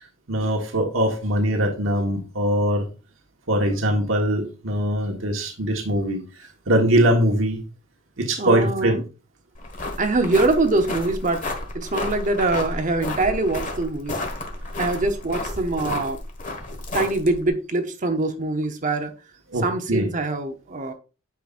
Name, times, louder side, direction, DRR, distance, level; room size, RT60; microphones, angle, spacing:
voice 1, 0.3-2.8 3.5-6.2 6.7-7.6 8.2-9.0 19.5-20.1, right 1 dB, 70° right, 1.4 m, -22 dB
voice 2, 8.4-9.0 10.0-11.4 11.7-14.2 14.8-16.2 16.9-19.1 19.6-20.9, right 2 dB, 40° right, 0.8 m, -23 dB
sound 1, 9.5-17.5, left 2 dB, 40° left, 1.5 m, -32 dB
9.3 x 5.8 x 2.5 m
head